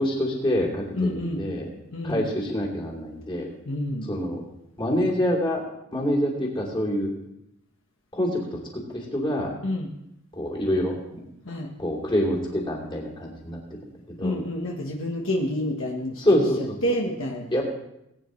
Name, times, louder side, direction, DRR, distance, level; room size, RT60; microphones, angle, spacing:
voice 1, 0.0-1.7 2.0-3.5 4.1-4.4 4.8-5.6 5.9-7.1 8.1-8.6 9.1-9.5 10.3-11.2 11.8-13.6 14.2-14.4 16.2-16.8 17.5-17.6, equal, 20° left, -3 dB, 2.9 m, -26 dB
voice 2, 0.9-1.4 1.9-2.2 3.6-4.1 9.6-9.9 11.5-11.7 14.2-17.5, left 1 dB, 60° left, 0 dB, 1.3 m, -28 dB
20.0 x 9.5 x 3.2 m, 0.83 s
head